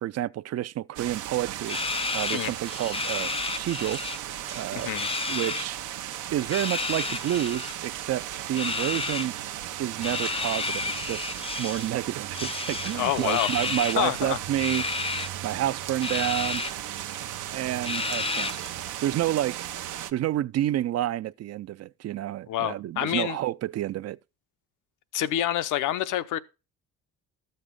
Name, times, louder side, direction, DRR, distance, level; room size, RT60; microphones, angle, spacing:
voice 1, 0.0-1.8 2.1-4.0 4.5-4.9 5.3-5.8 6.3-9.3 9.8-11.3 11.6-14.9 15.4-16.7 17.5-18.7 19.0-19.7 20.1-24.2, right 13 dB, 55° right, 0.5 m, -29 dB
sound 1, 1.0-20.1, right 12 dB, 80° right, 0.8 m, -36 dB
sound 2, 1.7-4.2 4.4-5.7 6.4-7.7 8.5-9.3 10.0-11.9 12.3-14.0 14.6-15.3 16.0-16.7 17.1-17.2 17.8-18.7, left 4 dB, 20° left, 0.5 m, -31 dB
voice 2, 4.7-5.1 12.9-13.6 14.0-14.4 22.5-23.4 25.1-26.4, left 12 dB, 85° left, 0.8 m, -27 dB
13.0 x 6.6 x 3.8 m
cardioid pair, 90°, 30 cm